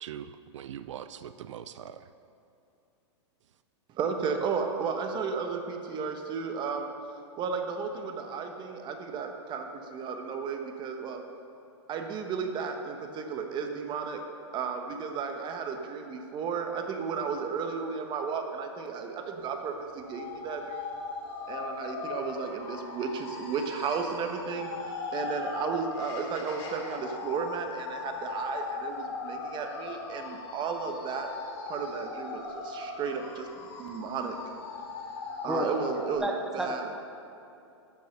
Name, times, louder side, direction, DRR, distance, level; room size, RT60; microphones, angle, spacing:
voice 1, 0.0-2.1, right 9 dB, 80° right, 12 dB, 0.4 m, -42 dB
voice 2, 3.9-6.9 7.4-11.2 11.9-14.2 14.5-21.0 21.5-24.7 25.1-31.3 31.7-34.4 35.4-36.3 36.5-36.8, right 5 dB, 30° right, 4 dB, 1.2 m, -34 dB
sound 1, 20.1-36.2, left 4 dB, 55° left, 2.5 m, -39 dB
voice 3, 36.2-37.0, equal, 5° right, 2 dB, 0.9 m, -31 dB
10.5 x 7.1 x 6.6 m, 2.7 s
hypercardioid pair, 125°, 15 cm